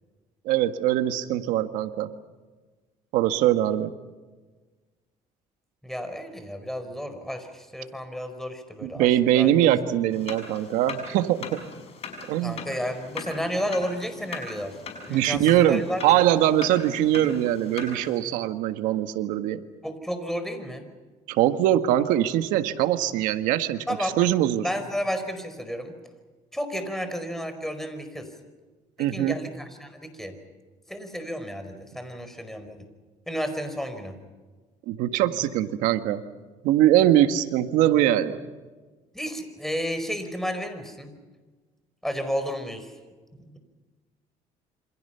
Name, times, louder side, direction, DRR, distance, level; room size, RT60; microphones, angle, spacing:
voice 1, 0.5-2.1 3.1-3.9 8.8-11.6 12.3-12.8 15.1-19.6 21.3-24.6 29.0-29.4 34.9-36.2 36.6-38.4, right 12 dB, 85° right, 9 dB, 1.7 m, -22 dB
voice 2, 5.8-9.5 12.4-14.8 15.1-16.0 19.8-20.9 23.9-24.2 24.6-25.9 26.5-28.3 29.0-30.3 30.9-32.8 33.3-34.1 39.1-41.1 42.0-42.9, equal, 5° left, 8 dB, 4.7 m, -32 dB
sound 1, 10.1-18.2, left 5 dB, 50° left, 6.2 m, -40 dB
28.0 x 26.0 x 5.8 m, 1.3 s
cardioid pair, 105°, 13 cm